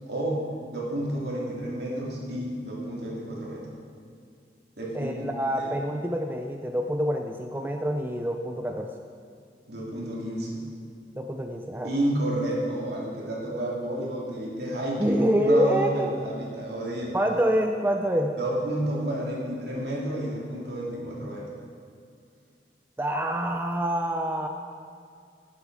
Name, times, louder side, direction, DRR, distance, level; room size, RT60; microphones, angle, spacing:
voice 1, 0.1-0.4 0.7-3.7 4.8-5.3 5.6-5.7 9.7-10.6 11.8-17.2 18.4-21.5, right 1 dB, 70° right, -4 dB, 2.7 m, -30 dB
voice 2, 4.9-8.9 11.1-11.9 15.0-16.1 17.1-18.4 23.0-24.5, equal, 10° right, 3 dB, 0.4 m, -26 dB
11.0 x 10.5 x 4.7 m, 2.2 s
head